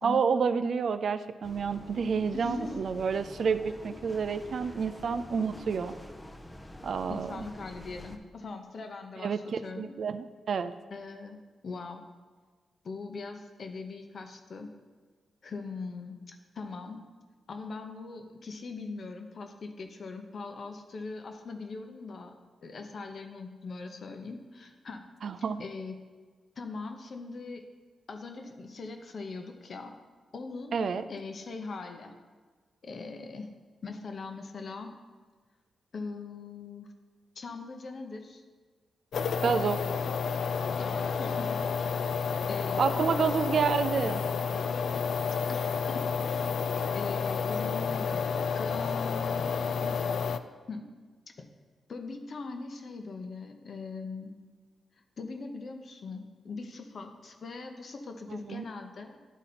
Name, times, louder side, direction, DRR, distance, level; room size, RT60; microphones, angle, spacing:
voice 1, 0.0-5.9 6.8-7.4 9.2-10.7 25.2-25.6 30.7-31.0 39.4-39.8 42.8-44.2 58.4-58.6, right 6 dB, 65° right, 11 dB, 0.4 m, -29 dB
sound 1, 1.4-8.2, left 1 dB, 15° left, 0.6 m, -47 dB
voice 2, 2.3-2.9 7.1-10.0 10.9-11.4 11.6-12.0 12.8-14.7 15.4-17.0 17.5-22.3 22.6-25.1 25.6-26.0 26.6-27.7 28.1-30.0 30.3-30.8 31.1-32.1 32.8-33.5 33.8-35.0 35.9-36.9 37.3-38.4 40.8-41.9 42.5-43.4 45.5-46.5 46.9-48.3 48.5-50.0 50.7-50.9 51.9-54.3 55.2-59.2, left 4 dB, 55° left, 5 dB, 0.8 m, -41 dB
sound 2, 39.1-50.4, left 6 dB, 75° left, 0.3 m, -30 dB
11.0 x 4.0 x 4.2 m, 1.4 s
cardioid pair, 90°, 0 cm